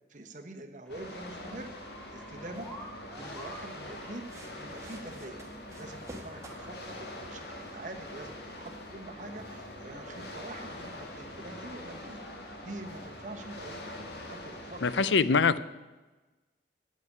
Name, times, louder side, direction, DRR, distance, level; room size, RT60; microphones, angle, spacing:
voice 1, 0.1-1.7 2.1-2.7 3.1-5.4 5.8-12.2 12.6-15.3, right 1 dB, 45° right, 4 dB, 1.2 m, -45 dB
sound 1, 0.9-15.1, left 1 dB, 65° left, 1.8 m, -44 dB
sound 2, 0.9-14.0, right 1 dB, 5° left, 2.1 m, -53 dB
sound 3, 3.9-11.4, right 1 dB, 15° right, 1.6 m, -53 dB
voice 2, 14.8-15.6, left 5 dB, 90° left, 16 dB, 0.6 m, -24 dB
9.3 x 8.5 x 8.6 m, 1.2 s
head